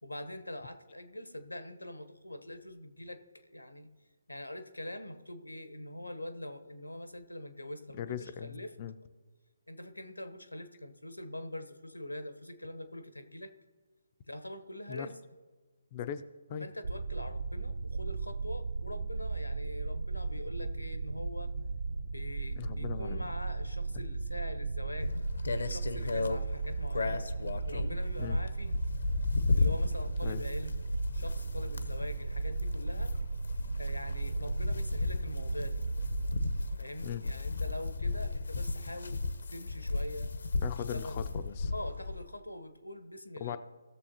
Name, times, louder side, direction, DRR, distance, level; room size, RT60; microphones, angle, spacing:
voice 1, 0.0-3.9 4.3-8.7 9.7-13.5 14.3-15.2 16.6-21.5 22.0-25.1 25.6-27.2 27.6-28.9 29.5-30.8 31.1-33.1 33.8-35.8 36.8-40.3 40.9-41.3 41.7-43.6, left 1 dB, 85° left, 9 dB, 1.0 m, -43 dB
voice 2, 8.0-8.9 14.9-15.1 15.9-16.2 16.5-16.7 22.6-23.2 28.2-28.4 30.2-30.4 37.0-37.2 40.6-41.7 43.4-43.6, left 9 dB, 30° left, 11 dB, 0.4 m, -39 dB
sound 1, 16.8-36.8, right 3 dB, 60° right, 0.4 m, -36 dB
sound 2, 25.0-42.2, left 3 dB, 65° left, 0.7 m, -34 dB
17.0 x 6.9 x 2.9 m, 1.3 s
figure-of-eight pair, 145°, 0 cm